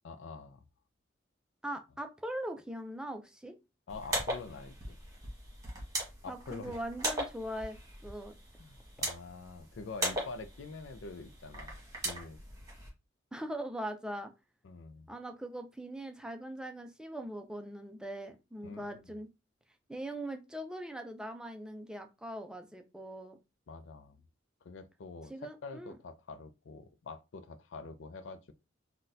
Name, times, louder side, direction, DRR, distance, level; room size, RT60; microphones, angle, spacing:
voice 1, 0.0-0.7 3.9-5.0 6.2-6.8 8.6-11.7 12.0-12.4 14.6-15.1 18.6-19.1 23.7-24.2 24.6-28.5, left 4 dB, 85° left, 0.4 m, -46 dB
voice 2, 1.6-3.6 6.3-8.3 13.3-14.3 15.1-19.3 19.9-23.4 25.3-26.0, right 1 dB, 5° right, 0.4 m, -41 dB
sound 1, 3.9-12.9, right 1 dB, 20° right, 1.4 m, -39 dB
4.0 x 2.2 x 2.6 m
head